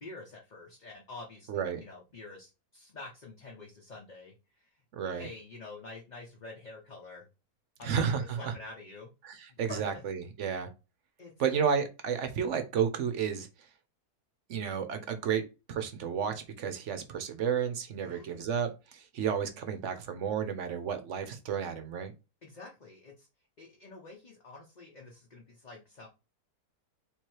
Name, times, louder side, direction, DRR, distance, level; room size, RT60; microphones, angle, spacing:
voice 1, 0.0-7.3 7.8-9.1 9.5-10.0 11.2-11.3 18.0-18.4 22.4-23.3 23.6-26.1, left 3 dB, 35° left, 0.9 m, -48 dB
voice 2, 1.5-1.8 4.9-5.3 7.8-8.5 9.2-10.7 11.4-13.5 14.5-15.4 15.7-22.1, right 7 dB, 60° right, 0.9 m, -32 dB
3.6 x 3.1 x 4.5 m
omnidirectional pair, 1.6 m